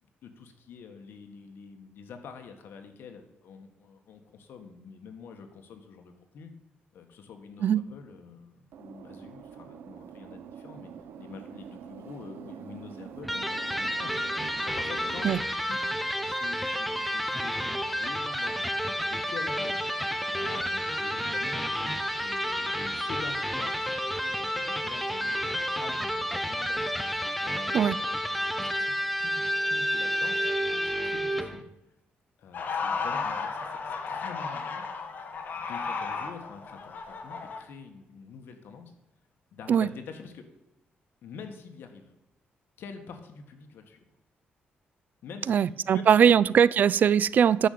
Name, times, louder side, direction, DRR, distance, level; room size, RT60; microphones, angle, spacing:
voice 1, 0.0-6.5 6.9-10.9 11.2-15.4 15.6-15.9 16.2-19.7 20.0-24.0 24.4-31.7 32.4-34.8 35.5-38.9 39.5-40.5 41.2-42.1 42.8-44.0 45.2-46.4, left 5 dB, 80° left, 1.7 m, -46 dB
sound 1, 8.7-15.3, right 8 dB, 85° right, 0.7 m, -45 dB
Electric guitar, 13.2-31.6, equal, ahead, 0.8 m, -30 dB
sound 2, 32.5-37.6, left 5 dB, 55° left, 1.5 m, -34 dB
voice 2, 45.5-47.7, right 8 dB, 55° right, 0.3 m, -21 dB
10.0 x 6.5 x 8.5 m
cardioid pair, 140°, 4 cm